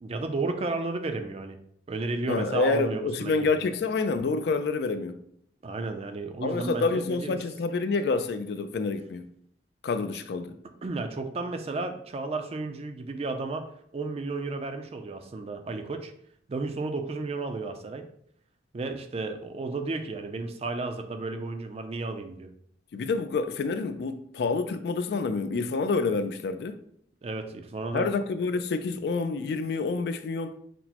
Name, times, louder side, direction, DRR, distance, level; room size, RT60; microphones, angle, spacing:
voice 1, 0.0-1.6 1.9-3.5 5.6-7.3 10.8-13.7 13.9-16.1 16.5-18.1 18.7-22.5 27.2-28.1, right 3 dB, 35° right, 0.4 m, -33 dB
voice 2, 2.3-5.2 6.4-9.3 9.8-10.6 22.9-26.8 27.9-30.5, left 4 dB, 60° left, 0.3 m, -28 dB
5.9 x 2.0 x 2.8 m
head